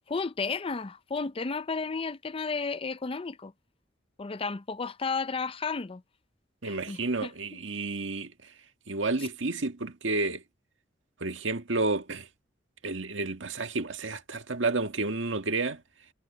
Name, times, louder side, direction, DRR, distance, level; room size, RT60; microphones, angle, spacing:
voice 1, 0.1-3.5 4.2-6.0 6.6-7.3 9.2-9.3, left 4 dB, 30° left, 0.5 m, -33 dB
voice 2, 6.6-8.3 8.9-10.4 11.2-12.3 12.8-15.8, right 3 dB, 85° right, 1.7 m, -30 dB
head